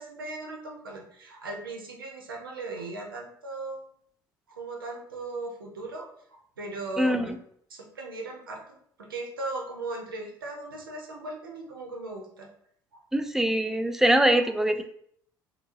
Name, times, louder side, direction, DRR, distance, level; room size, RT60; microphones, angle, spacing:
voice 1, 0.0-3.9 4.5-6.1 6.6-7.3 7.7-8.6 9.0-12.5 12.9-13.0 14.1-14.8, right 2 dB, 85° right, 0 dB, 0.5 m, -38 dB
voice 2, 13.1-14.8, right 1 dB, 5° right, 7 dB, 0.3 m, -23 dB
2.7 x 2.7 x 2.6 m, 0.66 s
hypercardioid pair, 60°, 11 cm